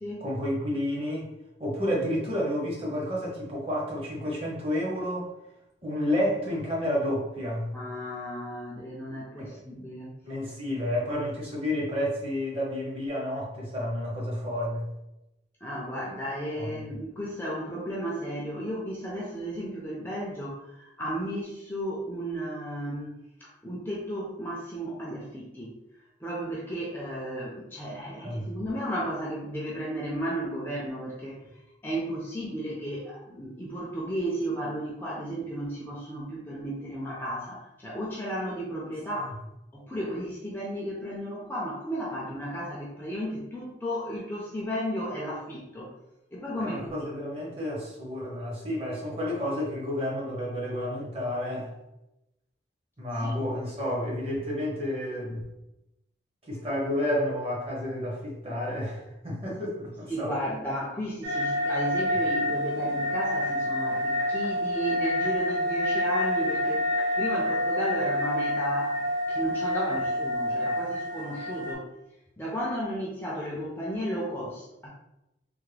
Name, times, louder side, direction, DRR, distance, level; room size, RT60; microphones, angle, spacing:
voice 1, 0.2-1.3 1.6-5.3 5.8-7.7 9.4-9.6 10.2-14.9 16.6-16.8 28.2-28.5 46.6-51.7 53.0-55.4 56.5-60.3, left 1 dB, 30° right, -4 dB, 0.8 m, -30 dB
voice 2, 7.7-10.1 15.6-23.1 23.4-25.7 26.2-31.4 31.8-39.4 39.7-45.9 46.3-47.1 53.2-53.3 60.1-66.8 67.2-71.9 72.4-74.9, equal, 10° left, -4 dB, 0.4 m, -34 dB
sound 1, 61.2-71.7, equal, 85° right, 0.9 m, -28 dB
3.4 x 2.1 x 3.3 m, 0.90 s
head